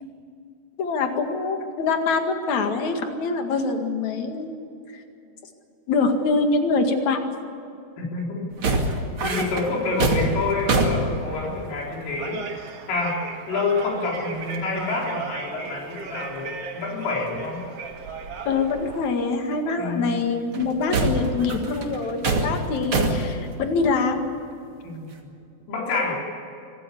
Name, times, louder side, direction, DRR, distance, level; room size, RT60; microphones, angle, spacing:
voice 1, 0.8-4.6 4.9-5.0 5.9-7.2 18.5-24.3, left 4 dB, 50° left, 5 dB, 2.4 m, -24 dB
voice 2, 8.0-8.5 9.2-13.2 13.5-17.6 19.8-20.2 24.8-25.3 25.7-26.2, left 3 dB, 70° left, -3 dB, 6.5 m, -28 dB
sound 1, 8.5-11.9 13.8-13.9 14.1-14.6 14.9-15.2 15.6-15.7 16.1-16.3 17.3-17.4 18.9-19.0 20.5-23.4, right 2 dB, 40° right, 2.2 m, -25 dB
sound 2, 9.6-19.0, right 4 dB, 65° right, 1.5 m, -37 dB
25.5 x 17.5 x 8.6 m, 2.7 s
omnidirectional pair, 5.9 m